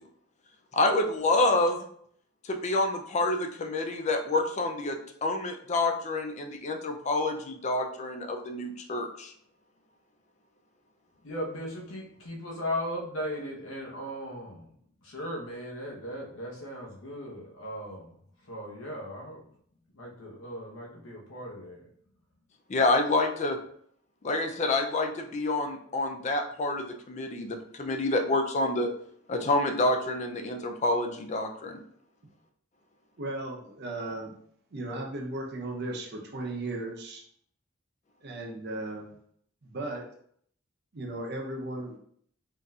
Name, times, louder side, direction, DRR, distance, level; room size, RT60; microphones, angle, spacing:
voice 1, 0.7-1.8 2.4-9.3 22.7-23.6 24.2-28.9 29.3-31.8, left 2 dB, 35° left, 4 dB, 0.4 m, -28 dB
voice 2, 11.2-14.7 15.0-18.2 18.4-19.4 19.9-21.8, equal, 80° left, -2 dB, 0.9 m, -37 dB
voice 3, 33.2-34.3 34.7-37.2 38.2-39.1 39.6-40.0 40.9-42.0, right 2 dB, 55° right, 0 dB, 0.7 m, -36 dB
3.7 x 2.7 x 2.3 m, 0.64 s
head